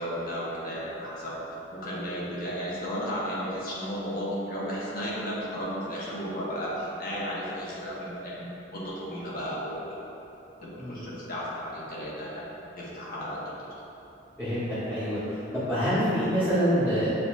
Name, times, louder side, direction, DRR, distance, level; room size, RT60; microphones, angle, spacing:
voice 1, 0.0-1.4 1.7-8.5 8.7-10.0 10.6-12.5 12.8-13.5, equal, 50° left, -7 dB, 1.0 m, -34 dB
voice 2, 14.4-17.2, equal, 10° left, -16 dB, 1.3 m, -26 dB
6.6 x 2.6 x 2.5 m, 2.9 s
head